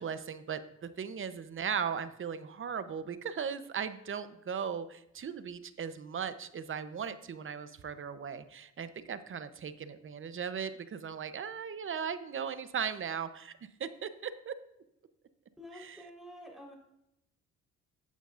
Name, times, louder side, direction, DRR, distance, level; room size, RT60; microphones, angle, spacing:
voice 1, 0.0-14.6 15.7-16.0, right 7 dB, 45° right, 12 dB, 0.8 m, -38 dB
voice 2, 15.6-16.7, left 1 dB, ahead, -2 dB, 4.0 m, -49 dB
14.0 x 9.0 x 2.5 m, 0.83 s
cardioid pair, 90°, 30 cm